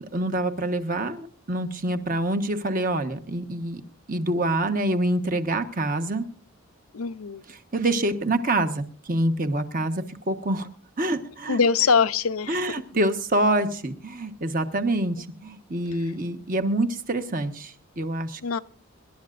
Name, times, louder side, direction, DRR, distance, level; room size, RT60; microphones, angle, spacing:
voice 1, 0.1-3.8 4.1-6.3 7.7-10.7 11.0-11.6 12.5-18.6, right 1 dB, 40° right, 1.3 m, -26 dB
voice 2, 6.9-7.4 11.5-12.6 18.4-18.6, left 5 dB, 85° left, 0.7 m, -22 dB
26.5 x 12.0 x 2.6 m
head